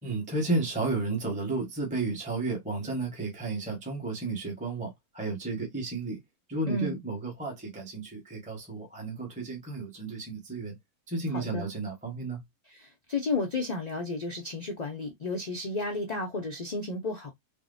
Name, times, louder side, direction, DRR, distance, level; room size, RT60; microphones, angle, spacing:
voice 1, 0.0-6.2 6.5-10.8 11.1-12.4, right 3 dB, 5° right, 0.7 m, -32 dB
voice 2, 6.7-7.0 11.3-11.7 12.7-17.3, left 3 dB, 80° left, 0.3 m, -32 dB
3.5 x 2.1 x 2.4 m
omnidirectional pair, 1.6 m